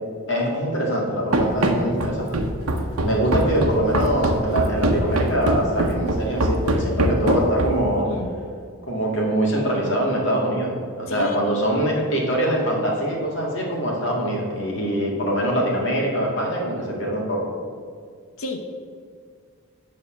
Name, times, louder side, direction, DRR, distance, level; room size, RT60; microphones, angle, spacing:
voice 1, 0.3-2.4 3.0-8.1 8.9-10.7 11.0-17.5, right 1 dB, 55° left, -2 dB, 2.0 m, -23 dB
Run, 1.3-7.9, right 1 dB, 85° right, 0.9 m, -22 dB
voice 2, 11.1-11.6 12.0-12.1 18.4-18.6, left 2 dB, 75° left, 4 dB, 0.8 m, -31 dB
9.1 x 4.1 x 7.3 m, 2.1 s
head